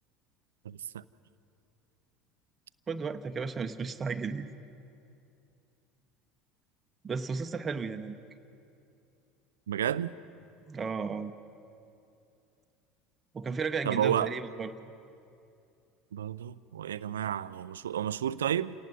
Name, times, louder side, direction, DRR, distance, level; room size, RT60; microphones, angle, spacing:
voice 1, 0.6-1.0 9.7-10.1 13.8-14.3 16.1-18.7, right 10 dB, 80° right, 17 dB, 0.4 m, -31 dB
voice 2, 2.9-4.5 7.0-8.2 10.7-11.3 13.3-14.7, right 5 dB, 30° right, 7 dB, 0.9 m, -34 dB
28.5 x 18.0 x 5.4 m, 2.7 s
hypercardioid pair, 70°, 0 cm